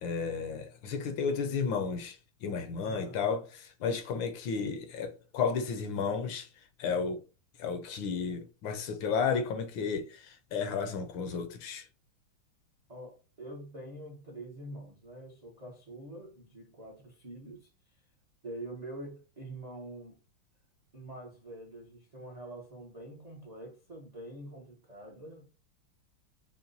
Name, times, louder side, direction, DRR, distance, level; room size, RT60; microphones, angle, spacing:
voice 1, 0.0-6.5 6.8-7.2 7.6-11.8, left 5 dB, 70° left, 1.3 m, -33 dB
voice 2, 2.8-3.2 4.6-4.8 12.9-18.0 18.4-20.2 20.9-25.5, right 1 dB, 45° right, 0.5 m, -45 dB
5.7 x 2.2 x 2.6 m
omnidirectional pair, 2.3 m